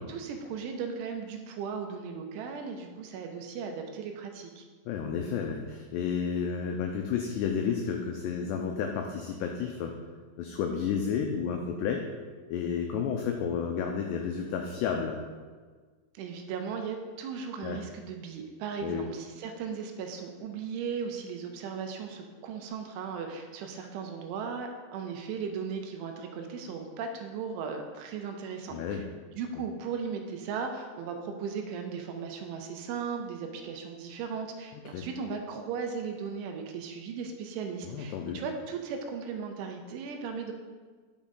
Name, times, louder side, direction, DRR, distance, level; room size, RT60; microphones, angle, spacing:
voice 1, 0.1-4.6 16.1-29.0 29.4-40.5, right 6 dB, 85° right, 4 dB, 3.1 m, -37 dB
voice 2, 4.9-10.0 10.4-12.1 12.5-15.2 17.6-17.8 18.8-19.1 28.7-29.1 34.9-35.1 37.8-38.4, left 7 dB, 90° left, 3 dB, 2.4 m, -31 dB
10.5 x 6.5 x 3.8 m, 1.5 s
omnidirectional pair, 5.7 m